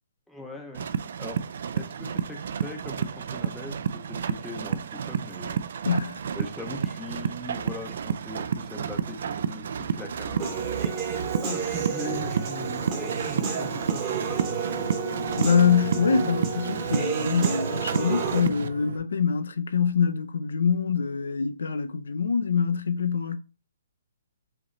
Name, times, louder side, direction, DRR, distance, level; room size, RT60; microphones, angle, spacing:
voice 1, 0.3-0.9 1.2-1.4 1.7-3.8 4.1-5.9 6.3-14.4, left 2 dB, ahead, 0.6 m, -41 dB
sound 1, 0.7-18.7, right 7 dB, 50° right, 0.3 m, -31 dB
voice 2, 5.8-6.2 15.4-23.4, left 6 dB, 85° left, 0.6 m, -24 dB
Human voice / Piano, 10.4-18.4, right 5 dB, 20° right, 0.9 m, -31 dB
sound 2, 12.0-19.0, right 4 dB, 70° right, 1.0 m, -38 dB
4.8 x 3.1 x 3.1 m
hypercardioid pair, 175°, 0 cm